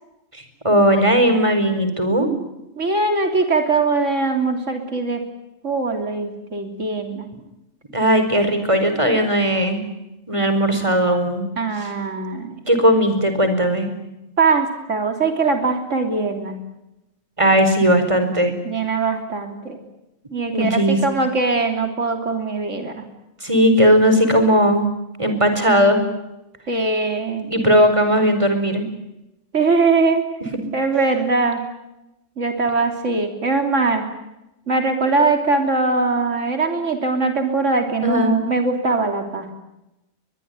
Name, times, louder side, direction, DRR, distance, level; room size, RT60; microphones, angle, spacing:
voice 1, 0.3-2.3 7.9-9.8 10.3-11.4 12.7-13.9 17.4-18.5 20.5-21.0 23.4-24.9 25.2-26.0 27.4-28.9 38.0-38.4, equal, 25° right, 7 dB, 4.8 m, -17 dB
voice 2, 2.8-5.2 5.6-7.3 8.5-8.6 11.6-12.6 14.4-16.6 18.6-19.8 20.3-23.1 26.7-27.5 29.5-30.2 30.7-31.6 32.4-34.1 34.7-39.5, right 3 dB, 70° right, 5 dB, 3.6 m, -21 dB
23.0 x 22.0 x 9.6 m, 0.93 s
omnidirectional pair, 1.3 m